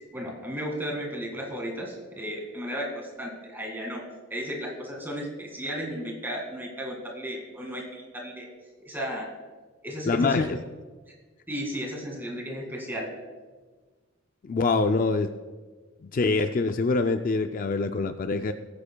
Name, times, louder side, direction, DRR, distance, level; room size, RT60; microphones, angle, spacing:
voice 1, 0.1-4.0 4.3-8.5 8.8-9.3 9.8-10.4 11.5-13.1, equal, 10° right, 0 dB, 2.0 m, -34 dB
voice 2, 10.1-10.6 14.4-15.3 16.0-18.5, left 3 dB, 40° left, 8 dB, 0.4 m, -25 dB
19.5 x 9.8 x 2.3 m, 1.4 s
head